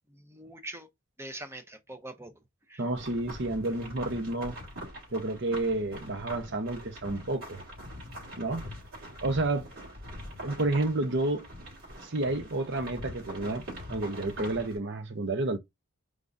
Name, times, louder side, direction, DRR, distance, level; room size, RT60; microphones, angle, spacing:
voice 1, 0.1-0.9 1.2-2.4 2.7-2.8, right 1 dB, 10° right, 0.6 m, -43 dB
voice 2, 2.8-4.6 5.1-7.6 8.3-8.6 9.2-9.7 10.4-11.5 12.0-13.6 13.9-15.6, right 2 dB, 55° right, 0.8 m, -30 dB
sound 1, 2.9-14.8, equal, 80° right, 3.7 m, -43 dB
4.9 x 3.6 x 2.6 m
head